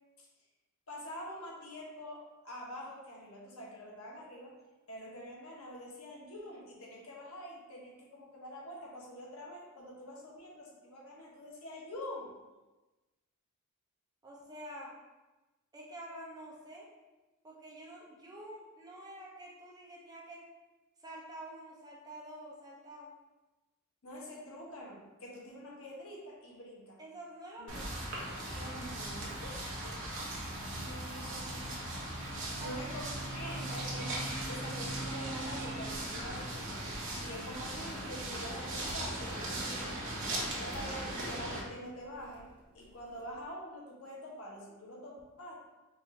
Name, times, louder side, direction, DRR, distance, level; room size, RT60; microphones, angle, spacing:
voice 1, 0.9-4.5 4.9-12.3 24.0-27.0 27.6-27.7 28.5-30.3 30.7-32.0 32.5-42.5 42.7-45.5, equal, 75° left, -3 dB, 1.0 m, -46 dB
voice 2, 14.2-14.9 15.7-16.9 17.4-20.4 21.0-23.1 27.0-28.0 32.6-32.9, right 1 dB, 15° right, -4 dB, 0.6 m, -48 dB
sound 1, 27.7-41.6, right 1 dB, 60° right, 1.0 m, -38 dB
sound 2, 28.1-43.4, equal, 85° right, 1.0 m, -56 dB
4.7 x 2.6 x 3.2 m, 1.1 s
head